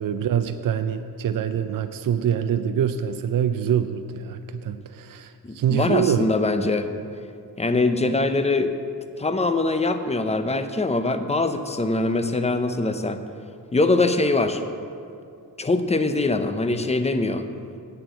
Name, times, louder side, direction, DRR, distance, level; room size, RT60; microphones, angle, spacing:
voice 1, 0.0-6.2, right 9 dB, 60° right, 9 dB, 0.5 m, -25 dB
voice 2, 5.4-6.9 7.6-8.7 9.2-13.2 13.7-14.6 15.6-17.5, left 2 dB, 15° left, 9 dB, 0.6 m, -23 dB
7.9 x 7.7 x 8.2 m, 2.5 s
wide cardioid pair, 115°, 38 cm